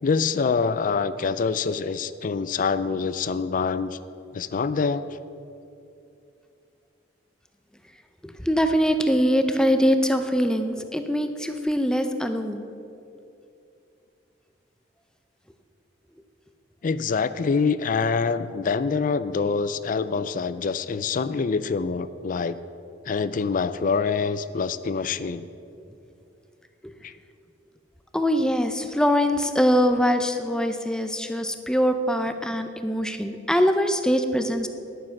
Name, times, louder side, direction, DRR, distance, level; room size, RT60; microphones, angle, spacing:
voice 1, 0.0-4.0 4.3-5.2 16.8-22.6 23.1-25.5 27.0-27.1, left 5 dB, 45° left, 14 dB, 0.4 m, -25 dB
voice 2, 8.4-12.6 28.1-34.7, equal, 5° left, 7 dB, 0.6 m, -23 dB
10.0 x 9.5 x 6.0 m, 2.6 s
head